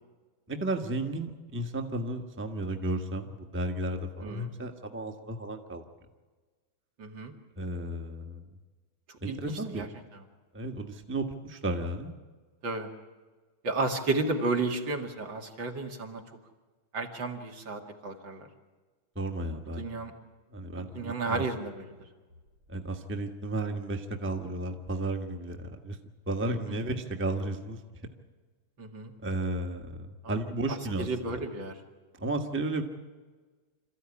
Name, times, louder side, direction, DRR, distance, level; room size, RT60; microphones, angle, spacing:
voice 1, 0.5-5.8 7.6-8.4 9.2-9.8 10.5-12.1 19.1-19.9 20.5-21.4 22.7-26.0 26.3-28.1 29.2-31.4 32.1-32.8, right 2 dB, 5° right, 4 dB, 1.2 m, -33 dB
voice 2, 4.2-4.5 7.0-7.3 9.1-9.9 10.1-10.2 12.6-12.9 13.6-16.2 16.9-18.5 19.8-20.1 20.8-21.9 26.5-26.8 28.8-29.1 30.2-30.3 30.7-31.8, right 3 dB, 65° right, 3 dB, 2.9 m, -33 dB
27.0 x 14.5 x 9.8 m, 1.4 s
omnidirectional pair, 2.2 m